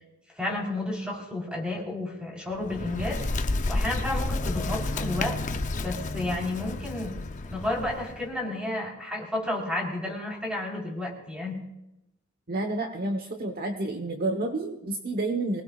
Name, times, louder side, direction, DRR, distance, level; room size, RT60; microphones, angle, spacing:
voice 1, 0.4-5.4 5.8-7.2 7.4-11.6, left 2 dB, 5° right, -1 dB, 4.2 m, -32 dB
Bird, 2.5-8.3, left 2 dB, 35° left, 0.7 m, -31 dB
voice 2, 12.5-15.6, right 2 dB, 45° right, 5 dB, 1.2 m, -29 dB
24.5 x 19.0 x 2.5 m, 0.89 s
head